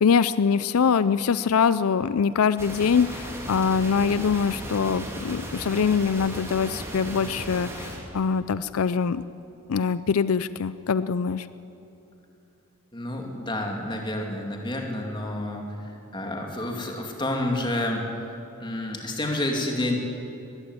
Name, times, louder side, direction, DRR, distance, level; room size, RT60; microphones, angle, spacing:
voice 1, 0.0-9.2 9.7-11.5, left 6 dB, 85° left, 15 dB, 0.5 m, -23 dB
sound 1, 2.6-8.0, right 1 dB, 10° right, 3.0 m, -36 dB
voice 2, 12.9-18.1 18.6-20.0, left 1 dB, 20° left, 2 dB, 2.5 m, -29 dB
20.5 x 15.5 x 9.7 m, 2.9 s
head